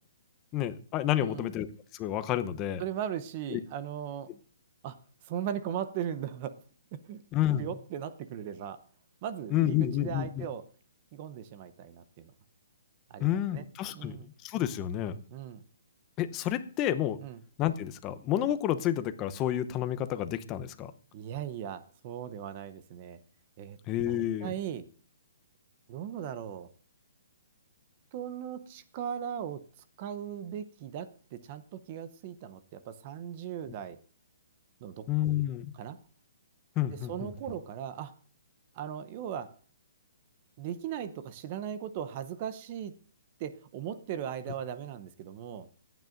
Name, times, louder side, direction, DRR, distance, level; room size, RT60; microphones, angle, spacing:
voice 1, 0.5-1.7 1.9-2.8 3.5-3.6 7.3-7.7 9.5-10.5 13.2-14.2 14.4-15.2 16.2-17.2 17.6-20.9 23.9-24.5 35.1-35.7 36.8-37.3, left 12 dB, 25° left, 11 dB, 0.7 m, -29 dB
voice 2, 1.2-1.5 2.8-4.3 4.8-5.0 5.2-6.6 6.9-7.2 7.6-8.8 9.2-10.7 11.1-12.3 13.1-13.7 13.9-14.3 15.3-15.6 17.2-17.4 21.1-23.2 23.6-23.8 24.1-24.9 25.9-26.7 28.1-29.7 30.0-34.0 34.8-35.1 35.7-36.0 36.9-38.1 38.7-39.6 40.6-43.0 43.4-45.7, right 9 dB, 35° right, 12 dB, 0.7 m, -38 dB
24.5 x 9.2 x 2.6 m, 0.43 s
hypercardioid pair, 155°, 0 cm